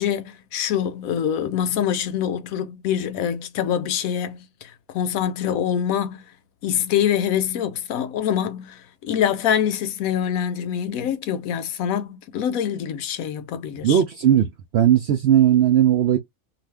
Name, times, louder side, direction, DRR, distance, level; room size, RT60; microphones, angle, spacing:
voice 1, 0.0-6.2 6.6-14.0, left 9 dB, 75° left, 1.0 m, -25 dB
voice 2, 13.8-16.2, right 10 dB, 70° right, 0.6 m, -17 dB
2.5 x 2.5 x 3.2 m
omnidirectional pair, 1.5 m